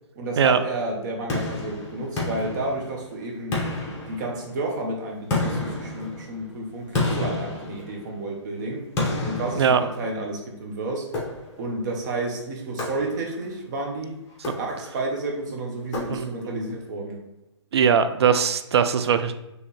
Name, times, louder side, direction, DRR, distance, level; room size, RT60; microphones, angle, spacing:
voice 1, 0.2-3.5 4.1-8.8 9.2-11.1 11.6-14.2 14.6-17.2, right 2 dB, 40° right, 0 dB, 0.9 m, -31 dB
sound 1, 1.3-3.1 3.5-4.7 5.3-8.3 9.0-10.4 11.1-11.8 12.8-13.5 14.3-15.1 15.9-16.6, left 2 dB, 20° left, 1.2 m, -30 dB
voice 2, 16.1-16.6 17.7-19.3, right 7 dB, 60° right, 10 dB, 0.4 m, -20 dB
4.4 x 3.2 x 3.1 m, 0.94 s
hypercardioid pair, 135°, 15 cm